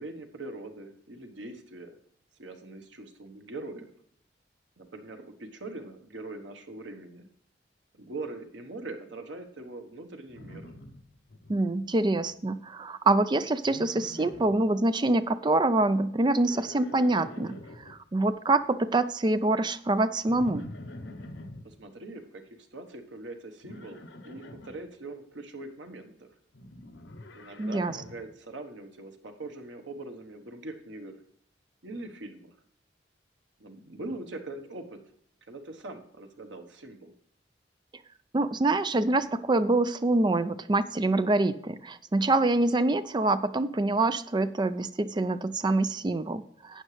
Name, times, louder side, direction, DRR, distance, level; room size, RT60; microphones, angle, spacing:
voice 1, 0.0-2.0 2.4-3.9 4.8-7.3 7.9-10.7 21.6-26.3 27.3-31.2 31.8-32.5 33.6-35.0 35.5-37.1, right 2 dB, 90° right, 6 dB, 1.2 m, -42 dB
Livestock farm animals working animals, 10.3-11.5 11.8-12.3 13.6-14.6 16.2-18.0 20.3-21.7 23.6-24.8 26.5-28.3, left 1 dB, 80° left, 0.8 m, -45 dB
voice 2, 11.5-17.6 17.9-20.7 27.6-28.0 38.3-46.8, right 2 dB, 25° right, 12 dB, 0.4 m, -25 dB
11.5 x 8.8 x 3.3 m, 0.66 s
head